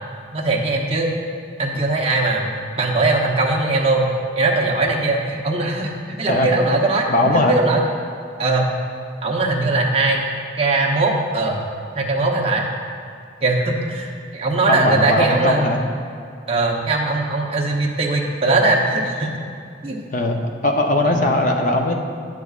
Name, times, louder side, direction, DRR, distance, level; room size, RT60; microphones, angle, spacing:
voice 1, 0.3-1.1 1.6-4.1 4.4-7.8 8.4-8.7 9.2-10.2 10.6-11.6 11.9-12.7 13.4-15.7 16.5-19.3 19.8-20.0 21.0-21.2, right 2 dB, 30° right, -2 dB, 0.8 m, -20 dB
voice 2, 7.1-7.5 14.7-15.8 20.1-20.4 20.6-21.9, left 1 dB, 45° left, 3 dB, 0.7 m, -19 dB
10.5 x 8.2 x 2.4 m, 2.4 s
head